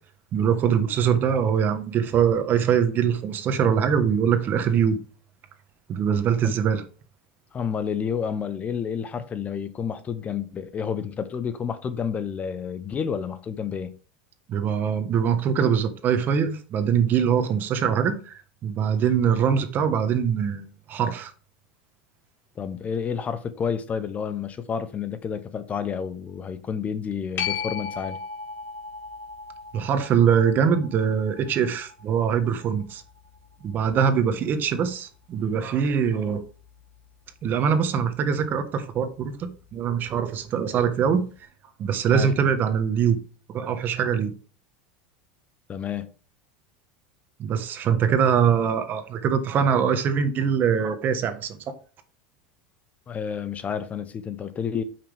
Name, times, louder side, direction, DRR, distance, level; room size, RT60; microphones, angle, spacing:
voice 1, 0.3-5.0 5.9-6.8 14.5-21.3 29.7-33.0 33.6-36.4 37.4-41.2 41.8-43.2 43.5-44.3 47.4-51.6, right 7 dB, 40° right, 1.3 m, -23 dB
voice 2, 7.5-13.9 22.6-28.2 42.1-42.3 45.7-46.1 53.1-54.8, left 7 dB, 30° left, 0.8 m, -30 dB
sound 1, 27.4-34.5 40.1-40.2, left 6 dB, 45° left, 3.8 m, -37 dB
8.6 x 5.9 x 3.5 m
hypercardioid pair, 105°, 5 cm